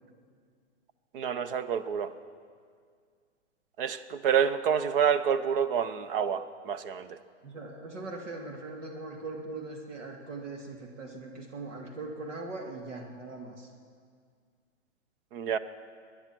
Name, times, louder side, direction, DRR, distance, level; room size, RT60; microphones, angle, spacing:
voice 1, 1.1-2.1 3.8-7.2 15.3-15.6, right 7 dB, 45° right, 13 dB, 0.8 m, -28 dB
voice 2, 7.4-13.7, right 3 dB, 70° right, 2 dB, 2.3 m, -40 dB
22.0 x 10.5 x 6.1 m, 2.1 s
hypercardioid pair, 135°, 37 cm